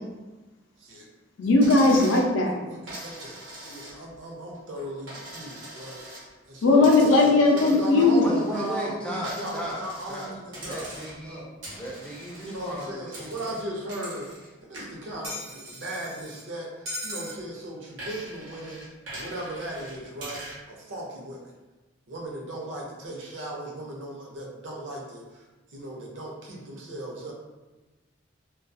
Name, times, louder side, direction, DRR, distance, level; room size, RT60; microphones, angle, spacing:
voice 1, 1.4-2.6 6.6-8.4, left 2 dB, 85° left, 1 dB, 0.5 m, -18 dB
Coin (dropping), 1.6-2.3 2.9-4.2 4.5-6.3 6.8-8.8 9.2-10.3 10.5-11.3 11.6-14.5 14.7-16.4 16.9-17.4 18.0-20.6, right 1 dB, 90° right, 1.0 m, -41 dB
voice 2, 2.6-10.9 11.2-11.5 12.4-14.3 14.6-18.8 19.1-21.4 22.1-25.4 25.7-27.3, right 1 dB, 75° right, -2 dB, 0.6 m, -37 dB
voice 3, 8.2-13.6, equal, 5° left, -3 dB, 0.3 m, -36 dB
2.3 x 2.3 x 2.6 m, 1.2 s
head